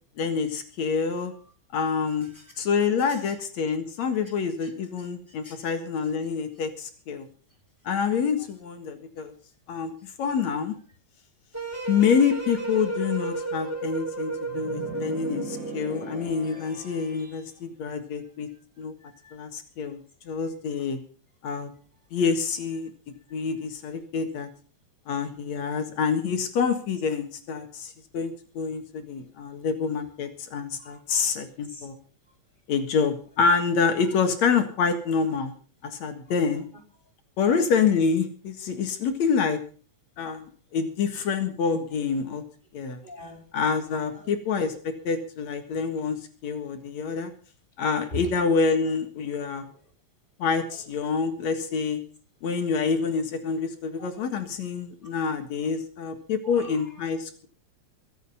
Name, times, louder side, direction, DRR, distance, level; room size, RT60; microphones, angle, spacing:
voice 1, 0.2-1.3 1.7-2.3 2.6-7.3 7.8-9.3 9.7-10.7 11.9-18.5 18.8-18.9 19.3-20.0 20.3-21.0 21.4-21.7 22.1-22.9 23.3-24.5 25.1-32.0 32.7-35.5 35.8-36.7 37.4-39.6 40.2-42.4 42.7-43.0 43.5-47.3 47.8-49.7 50.4-52.0 52.4-57.5, left 5 dB, 70° left, 7 dB, 2.9 m, -27 dB
sound 1, 11.5-15.9, right 3 dB, 5° right, 3.4 m, -32 dB
sound 2, 14.5-17.5, right 2 dB, 40° right, 7.4 m, -40 dB
voice 2, 19.0-19.4 30.8-31.3 31.7-31.9 34.1-34.2 37.5-37.7 43.0-43.4 43.9-44.3 48.1-48.3 51.0-51.1 54.0-54.1 56.4-57.0, left 1 dB, 15° left, 3 dB, 5.1 m, -42 dB
22.5 x 8.1 x 5.6 m, 0.42 s
omnidirectional pair, 3.3 m